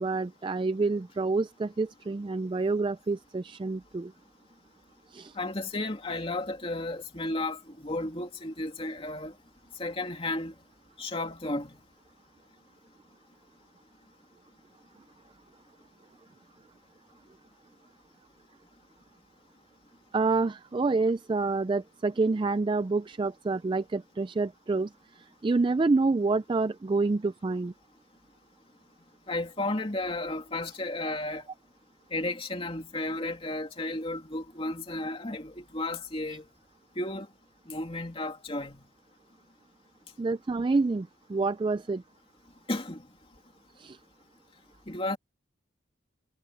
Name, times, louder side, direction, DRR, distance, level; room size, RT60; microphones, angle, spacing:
voice 1, 0.0-4.1 5.1-5.4 20.1-24.9 25.2-27.7 40.2-42.0 43.8-44.0, right 3 dB, 25° right, 0.3 m, -28 dB
voice 2, 5.3-9.3 9.8-10.5 11.0-11.7 29.3-31.4 32.1-36.4 37.0-37.3 37.7-38.8 42.7-43.0 44.9-45.2, left 2 dB, 30° left, 2.7 m, -33 dB
head